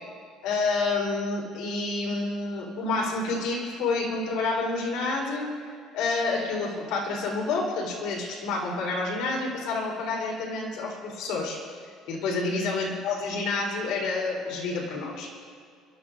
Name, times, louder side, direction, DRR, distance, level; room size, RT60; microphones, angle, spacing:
voice 1, 0.4-5.5 5.9-11.6 12.1-15.3, left 3 dB, 80° left, -2 dB, 4.0 m, -29 dB
28.5 x 14.0 x 2.6 m, 2.2 s
cardioid pair, 170°, 0 cm